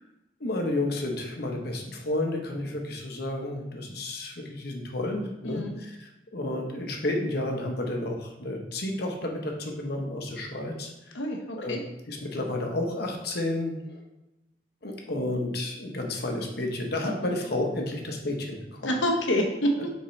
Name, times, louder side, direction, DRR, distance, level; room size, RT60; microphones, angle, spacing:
voice 1, 0.4-10.9 11.5-11.8 12.1-14.0 14.8-19.0, left 1 dB, 60° left, 2 dB, 1.0 m, -31 dB
voice 2, 11.1-11.8 17.0-17.3 18.8-19.9, equal, 85° left, 2 dB, 1.0 m, -27 dB
6.8 x 4.5 x 3.2 m, 0.94 s
head